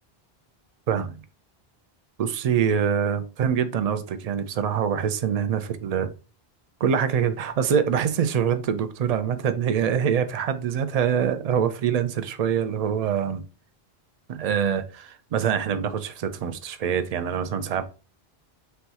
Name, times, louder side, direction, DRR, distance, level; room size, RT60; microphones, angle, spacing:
voice 1, 2.2-6.1 6.8-13.4 14.3-17.8, right 8 dB, 55° right, 0.4 m, -24 dB
4.4 x 2.3 x 4.0 m
omnidirectional pair, 1.1 m